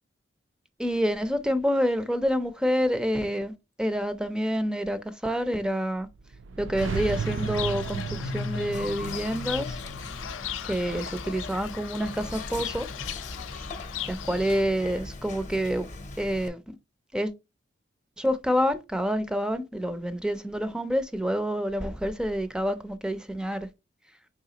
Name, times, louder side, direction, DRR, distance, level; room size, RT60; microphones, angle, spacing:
voice 1, 0.8-6.1 6.6-9.8 10.7-12.9 14.1-15.9 16.2-16.6 17.1-17.3 18.2-23.7, equal, 5° right, 0.4 m, -27 dB
sound 1, 6.0-11.2, right 5 dB, 70° right, 0.4 m, -35 dB
Fowl / Bird, 6.8-14.6, left 8 dB, 90° left, 0.4 m, -37 dB
Whispering, 8.7-16.5, left 2 dB, 40° left, 0.6 m, -40 dB
4.8 x 3.4 x 2.8 m
head